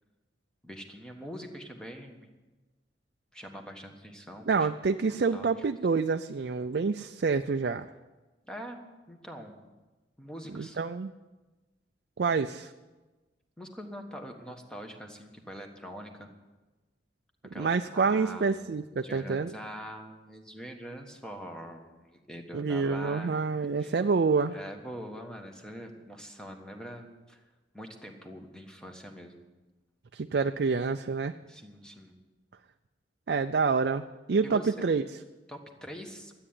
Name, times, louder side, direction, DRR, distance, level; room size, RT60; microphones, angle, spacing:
voice 1, 0.6-2.3 3.3-4.7 5.3-5.6 8.4-8.8 9.1-9.6 10.2-10.8 13.6-16.3 17.5-23.4 23.8-24.0 24.5-27.4 27.7-29.4 31.5-32.2 34.4-34.7 35.5-36.3, equal, 5° left, 3 dB, 1.4 m, -43 dB
voice 2, 4.5-7.9 10.6-11.1 12.2-12.7 17.6-19.5 22.5-24.6 30.1-31.3 33.3-35.0, right 4 dB, 60° right, 7 dB, 0.4 m, -27 dB
12.5 x 8.8 x 9.5 m, 1.2 s
head